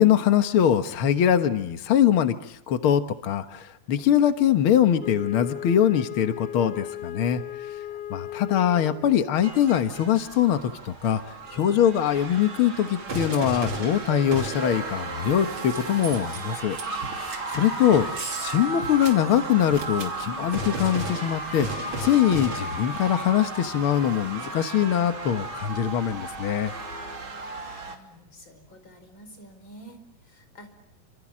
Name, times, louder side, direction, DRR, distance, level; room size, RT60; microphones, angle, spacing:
voice 1, 0.0-7.4 8.1-16.8 17.1-21.7 22.0-26.7, left 10 dB, 80° left, 8 dB, 1.2 m, -23 dB
Wind instrument woodwind instrument, 5.0-9.2, left 11 dB, 65° left, 1.6 m, -37 dB
sound 1, 9.4-28.0, right 3 dB, 35° right, 3.4 m, -34 dB
voice 2, 27.8-30.7, right 1 dB, 30° left, 8 dB, 5.4 m, -49 dB
28.5 x 27.0 x 7.5 m, 0.75 s
omnidirectional pair, 4.3 m